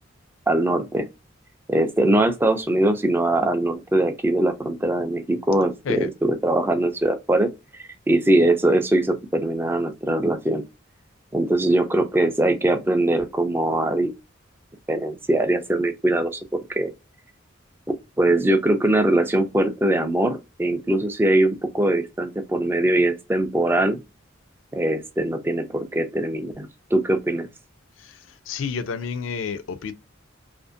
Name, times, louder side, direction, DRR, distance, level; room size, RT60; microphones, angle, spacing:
voice 1, 0.5-1.1 1.7-10.6 11.3-14.1 14.9-16.4 16.7-16.9 18.2-24.0 24.7-27.5, right 1 dB, 10° right, 0.3 m, -21 dB
voice 2, 28.5-29.9, left 5 dB, 70° left, 0.4 m, -30 dB
2.5 x 2.4 x 2.4 m
head